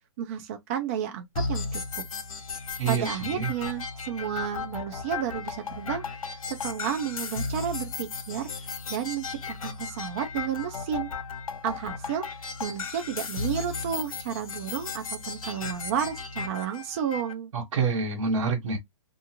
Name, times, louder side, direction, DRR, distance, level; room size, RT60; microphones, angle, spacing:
voice 1, 0.2-2.0 2.9-6.0 6.5-8.5 8.9-11.1 11.6-17.5, right 9 dB, 25° right, 0.4 m, -32 dB
sound 1, 1.3-17.3, left 4 dB, 85° left, 0.8 m, -35 dB
voice 2, 2.8-3.5 17.5-18.8, right 4 dB, 65° right, 1.3 m, -27 dB
2.4 x 2.2 x 2.9 m
hypercardioid pair, 160°, 17 cm